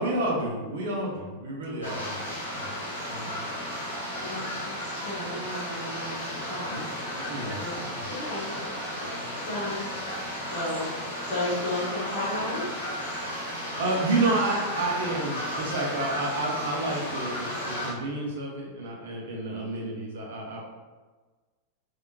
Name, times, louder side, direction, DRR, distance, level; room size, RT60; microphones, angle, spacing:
voice 1, 0.0-2.7 3.1-3.5 6.7-6.8 7.1-8.1 9.2-9.3 13.5-20.6, right 2 dB, 60° right, -1 dB, 0.7 m, -30 dB
sound 1, 1.8-17.9, equal, 75° left, 0.9 m, -34 dB
voice 2, 3.1-3.4 4.2-8.5 9.0-9.9 10.5-12.8 19.6-19.7, left 1 dB, 30° left, -11 dB, 1.5 m, -35 dB
3.5 x 2.7 x 2.7 m, 1.3 s
figure-of-eight pair, 90°, 0 cm